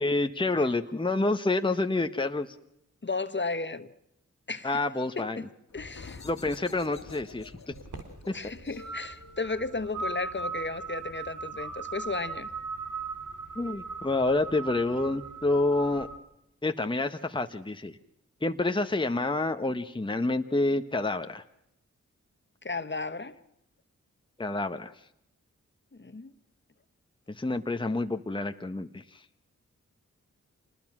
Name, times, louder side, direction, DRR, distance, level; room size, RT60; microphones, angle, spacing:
voice 1, 0.0-2.5 4.6-5.4 6.2-7.7 8.3-8.4 13.6-16.1 16.6-18.0 18.4-21.4 24.4-24.9 27.3-29.2, left 2 dB, 15° left, 1.1 m, -28 dB
voice 2, 3.0-3.9 4.5-4.8 5.2-5.5 5.7-6.2 8.3-12.5 22.6-23.4 25.9-26.3, left 3 dB, 35° left, 1.3 m, -34 dB
sound 1, 5.7-11.1, left 4 dB, 60° left, 1.9 m, -49 dB
sound 2, 7.7-16.2, right 4 dB, 80° right, 2.7 m, -39 dB
26.5 x 20.0 x 6.1 m
cardioid pair, 45°, 31 cm